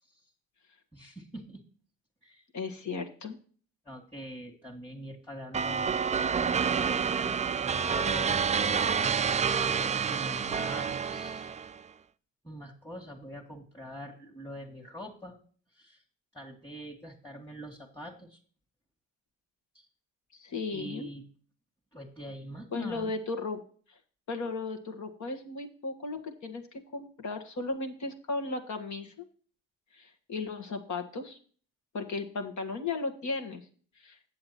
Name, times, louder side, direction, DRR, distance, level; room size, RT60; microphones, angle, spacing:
voice 1, 0.9-1.6 2.2-2.4 3.9-6.0 6.6-8.4 9.6-11.5 12.4-15.4 15.7-16.0 16.3-18.4 19.7-19.9 20.7-21.2 21.9-23.2, equal, 5° left, -2 dB, 2.0 m, -44 dB
voice 2, 2.5-3.4 20.3-21.1 22.7-23.6 23.9-24.0 24.3-29.2 29.9-31.4 31.9-33.7 34.0-34.2, left 3 dB, 50° left, 4 dB, 1.7 m, -35 dB
sound 1, 5.5-11.8, right 6 dB, 20° right, 0.4 m, -28 dB
7.8 x 7.6 x 4.3 m, 0.43 s
supercardioid pair, 75°, 37 cm